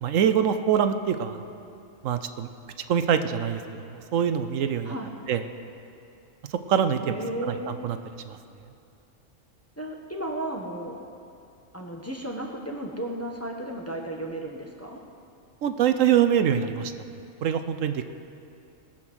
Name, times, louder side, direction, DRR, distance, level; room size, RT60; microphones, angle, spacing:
voice 1, 0.0-1.5 2.0-2.5 2.9-3.9 4.1-4.9 5.3-5.4 6.5-7.1 7.5-8.0 8.3-8.4 15.6-16.9 17.4-18.0, right 8 dB, 80° right, 9 dB, 1.0 m, -24 dB
voice 2, 7.0-7.9 9.8-11.0 11.7-15.0, right 1 dB, 10° left, 0 dB, 1.0 m, -34 dB
19.5 x 7.6 x 6.2 m, 2.6 s
omnidirectional pair, 1.3 m